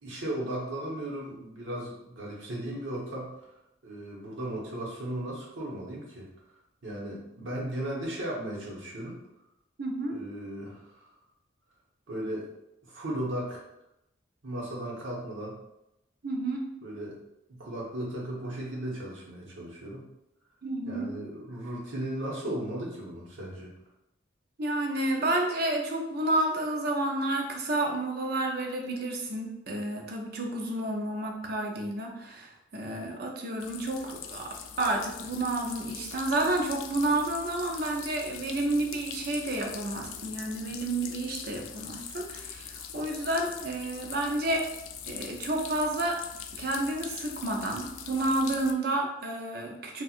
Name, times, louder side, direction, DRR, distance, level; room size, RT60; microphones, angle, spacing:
voice 1, 0.0-3.5 3.8-6.3 6.8-9.2 10.1-11.1 12.1-12.5 12.9-13.6 14.4-15.6 16.8-17.2 17.5-20.0 20.9-23.7, right 1 dB, 70° right, -4 dB, 1.1 m, -36 dB
voice 2, 9.8-10.2 16.2-16.6 20.6-21.1 24.6-44.7 45.1-46.2 46.6-50.0, right 2 dB, 50° right, 2 dB, 0.6 m, -30 dB
sound 1, 33.6-48.7, left 8 dB, 85° left, 0.3 m, -42 dB
4.2 x 2.4 x 2.4 m, 0.87 s
head